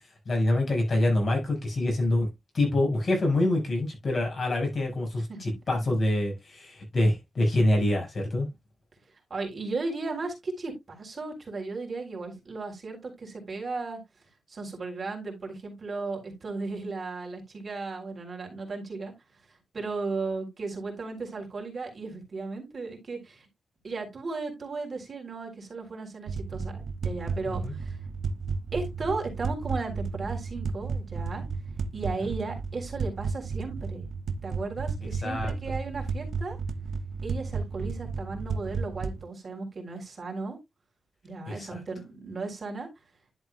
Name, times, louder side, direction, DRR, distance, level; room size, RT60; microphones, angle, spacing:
voice 1, 0.3-2.3 2.5-8.5 27.6-27.7 35.0-35.5 41.5-41.8, left 1 dB, 50° left, 5.4 m, -26 dB
voice 2, 9.3-14.0 14.5-19.1 19.7-23.5 23.8-28.0 28.7-31.5 31.9-34.1 34.4-36.6 37.2-40.6 41.2-42.9, right 3 dB, 45° right, 3.7 m, -35 dB
sound 1, 26.3-39.2, right 4 dB, 80° right, 0.7 m, -33 dB
11.0 x 7.3 x 2.3 m
wide cardioid pair, 105°, 0 cm